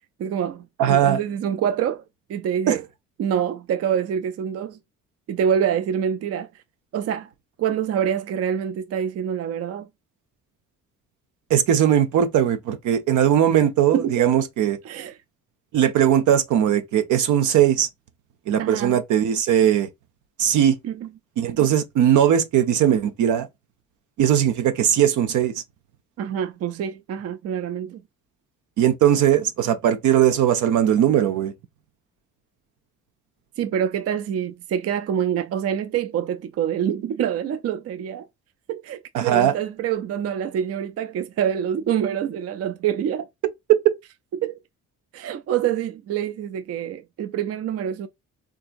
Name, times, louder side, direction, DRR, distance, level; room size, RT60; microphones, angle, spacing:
voice 1, 0.2-2.0 2.3-2.8 3.2-4.8 5.3-6.5 6.9-7.3 7.6-9.9 13.9-14.2 14.8-15.1 18.6-19.0 20.8-21.1 26.2-28.0 33.6-38.3 38.7-43.3 44.3-44.6 45.1-48.1, right 9 dB, 55° right, 0.4 m, -26 dB
voice 2, 0.8-1.2 2.7-2.8 11.5-14.8 15.7-17.9 18.5-19.9 20.4-20.8 21.4-23.5 24.2-25.5 28.8-31.5 39.1-39.5 43.7-43.8, right 10 dB, 80° right, 0.7 m, -19 dB
3.6 x 2.7 x 2.4 m
cardioid pair, 90°, 30 cm